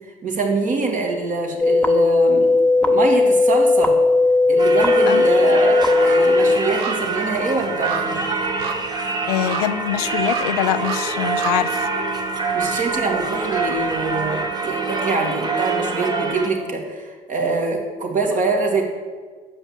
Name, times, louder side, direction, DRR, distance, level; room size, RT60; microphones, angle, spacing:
voice 1, 0.2-2.6 2.8-4.0 4.5-8.3 12.5-18.8, right 3 dB, 45° right, 0 dB, 2.1 m, -24 dB
sound 1, 1.6-6.6, left 3 dB, 5° left, 0.8 m, -16 dB
sound 2, 3.8-4.6 4.9-14.8 15.2-15.3, right 6 dB, 85° right, 0.8 m, -35 dB
Singing / Church bell, 4.6-16.5, right 4 dB, 20° right, 1.3 m, -25 dB
voice 2, 9.2-11.9, left 12 dB, 85° left, 13 dB, 0.4 m, -23 dB
7.2 x 5.5 x 7.3 m, 1.5 s
hypercardioid pair, 65°, 19 cm